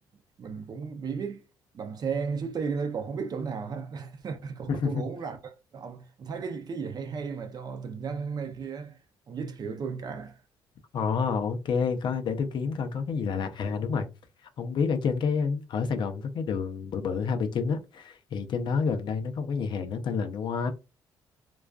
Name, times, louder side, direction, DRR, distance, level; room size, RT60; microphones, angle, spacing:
voice 1, 0.4-1.4 1.7-9.0 9.3-10.4, right 5 dB, 45° right, 0.5 m, -34 dB
voice 2, 4.7-5.0 10.9-14.1 14.6-20.7, left 5 dB, 60° left, 0.5 m, -29 dB
2.4 x 2.2 x 2.3 m
cardioid pair, 85°, 9 cm